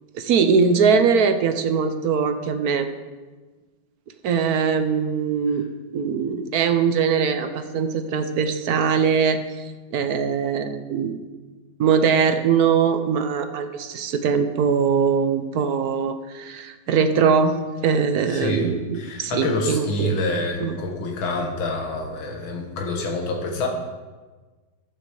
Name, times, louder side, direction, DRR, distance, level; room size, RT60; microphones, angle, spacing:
voice 1, 0.1-2.9 4.2-5.6 5.9-11.2 11.8-17.6 17.8-20.2 20.6-20.8, right 6 dB, 60° right, 8 dB, 1.1 m, -21 dB
voice 2, 18.3-23.7, left 2 dB, 75° left, 1 dB, 2.3 m, -27 dB
11.5 x 8.2 x 6.9 m, 1.3 s
omnidirectional pair, 2.2 m